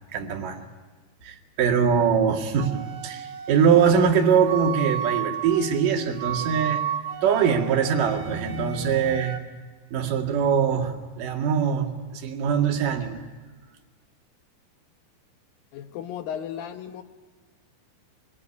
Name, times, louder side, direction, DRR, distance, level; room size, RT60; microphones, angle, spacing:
voice 1, 0.1-0.6 1.2-6.8 7.2-9.4 9.9-13.2, right 7 dB, 55° right, 2 dB, 3.3 m, -22 dB
Wind instrument woodwind instrument, 2.6-9.4, right 9 dB, 75° right, 3.6 m, -33 dB
voice 2, 15.7-17.0, left 9 dB, 70° left, 8 dB, 2.3 m, -35 dB
25.5 x 21.5 x 9.8 m, 1.4 s
omnidirectional pair, 5.3 m